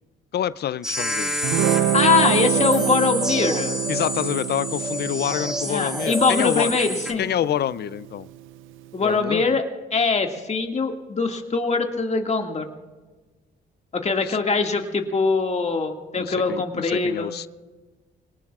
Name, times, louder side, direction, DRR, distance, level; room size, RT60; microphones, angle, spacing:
voice 1, 0.3-1.4 3.9-6.7 7.2-8.3 9.0-9.6 14.2-14.4 16.1-17.5, left 10 dB, 55° left, 18 dB, 0.4 m, -27 dB
sound 1, 0.8-7.1, equal, 5° right, 2.0 m, -27 dB
Guitar, 1.4-8.6, right 12 dB, 90° right, 0.5 m, -27 dB
voice 2, 1.9-3.8 5.7-7.3 8.9-9.6 9.9-12.7 13.9-17.3, left 4 dB, 35° left, 3 dB, 2.0 m, -22 dB
25.0 x 19.0 x 2.4 m, 1.3 s
cardioid pair, 90°, 20 cm